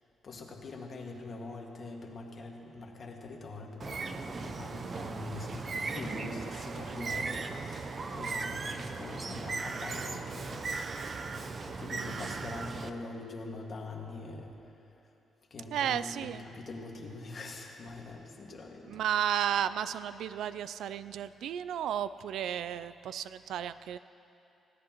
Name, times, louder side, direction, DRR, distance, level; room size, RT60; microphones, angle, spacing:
voice 1, 0.2-11.1 11.6-14.8 15.5-19.0, left 3 dB, 45° left, 1 dB, 1.8 m, -44 dB
Bird, 3.8-12.9, right 4 dB, 40° right, 0.6 m, -37 dB
voice 2, 12.0-12.4 15.7-16.4 18.9-24.0, right 10 dB, 80° right, 15 dB, 0.3 m, -33 dB
20.5 x 16.5 x 3.0 m, 2.9 s
cardioid pair, 105°, 0 cm